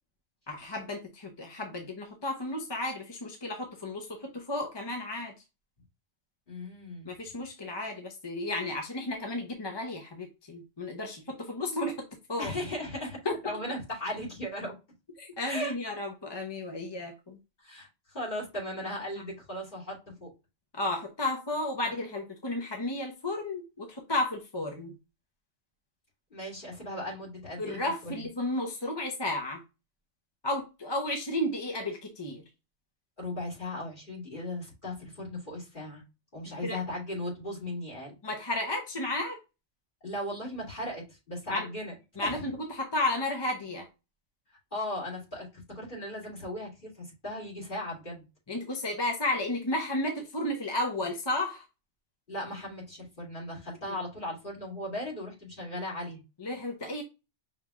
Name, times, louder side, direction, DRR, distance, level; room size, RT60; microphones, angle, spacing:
voice 1, 0.5-5.3 7.0-12.5 13.2-13.5 15.2-17.4 20.7-25.0 27.6-29.6 30.4-32.4 36.6-36.8 38.2-39.4 41.5-41.7 42.2-43.9 48.5-51.6 56.4-57.0, left 1 dB, 25° left, 0.7 m, -33 dB
voice 2, 6.5-7.1 12.4-14.7 15.4-15.7 17.6-20.3 26.3-28.3 33.2-36.0 36.3-38.1 40.0-41.9 42.2-42.5 44.7-48.2 52.3-56.2, left 1 dB, 45° left, 2.9 m, -37 dB
5.7 x 3.4 x 2.3 m
omnidirectional pair, 1.2 m